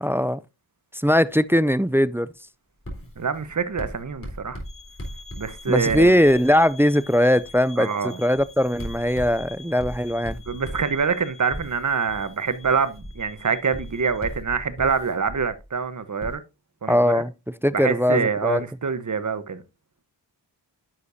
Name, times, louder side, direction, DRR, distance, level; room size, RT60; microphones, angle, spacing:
voice 1, 0.0-0.4 0.9-2.3 5.7-10.4 16.9-17.3 17.6-18.6, equal, 5° right, 0.3 m, -20 dB
Writing, 2.8-6.8 7.3-7.6 8.3-15.7 16.2-16.3, equal, 30° left, 3.7 m, -38 dB
voice 2, 3.2-4.6 5.4-6.1 7.8-8.2 10.5-16.4 16.8-17.2 17.7-19.6, right 5 dB, 40° right, 1.1 m, -25 dB
sound 1, 4.6-14.3, left 4 dB, 45° left, 2.3 m, -48 dB
10.0 x 6.7 x 2.7 m
cardioid pair, 60°, 45 cm